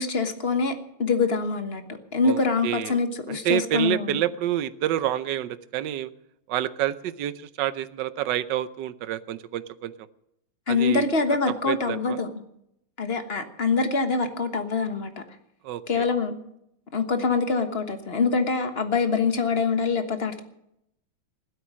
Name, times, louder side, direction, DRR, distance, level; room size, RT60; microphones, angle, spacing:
voice 1, 0.0-1.8 2.1-4.2 10.7-12.3 13.0-15.1 15.9-16.3 16.9-20.4, left 4 dB, 35° left, 8 dB, 1.3 m, -24 dB
voice 2, 2.2-3.0 3.3-6.1 6.5-9.9 10.7-11.0 11.6-12.2 15.6-16.1, right 12 dB, 65° right, 14 dB, 1.3 m, -28 dB
16.0 x 12.5 x 6.2 m, 0.78 s
omnidirectional pair, 2.4 m